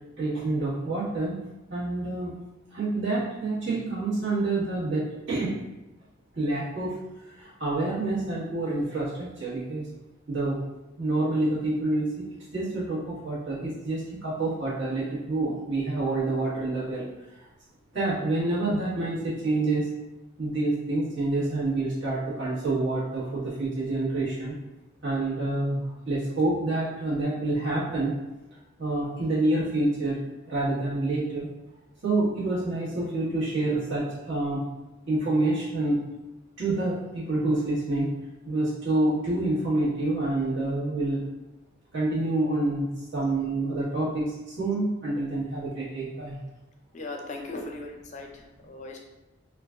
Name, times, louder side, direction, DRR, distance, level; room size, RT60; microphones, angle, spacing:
voice 1, 0.2-1.4 1.7-2.3 2.7-5.6 6.3-7.0 7.3-9.9 10.3-10.6 11.0-12.2 12.5-17.0 17.9-19.9 20.4-24.5 25.0-25.8 26.0-28.2 28.8-30.2 30.5-31.5 32.0-34.6 35.1-36.0 36.6-38.1 38.4-41.2 41.9-46.3, right 2 dB, 60° right, -10 dB, 1.5 m, -27 dB
voice 2, 46.9-49.0, left 2 dB, 35° left, 2 dB, 0.4 m, -38 dB
3.8 x 2.4 x 2.4 m, 1.0 s
head